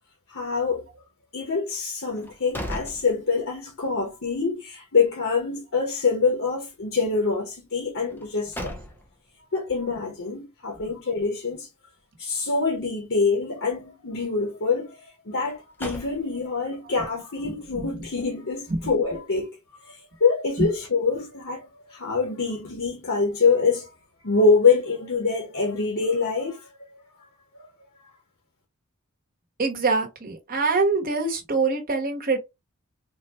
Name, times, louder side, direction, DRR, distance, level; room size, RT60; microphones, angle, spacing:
voice 1, 0.3-0.9 1.3-8.7 9.5-11.7 12.2-15.0 15.3-19.5 19.9-23.9 24.2-26.6 27.6-27.7, left 4 dB, 65° left, 0.9 m, -25 dB
sound 1, 2.1-3.8 4.2-4.3 8.1-9.3 15.4-16.7, equal, 10° left, 0.5 m, -37 dB
voice 2, 17.4-18.1 18.7-18.9 20.6-20.7 29.6-32.4, right 3 dB, 40° right, 1.0 m, -25 dB
3.7 x 2.2 x 2.9 m
head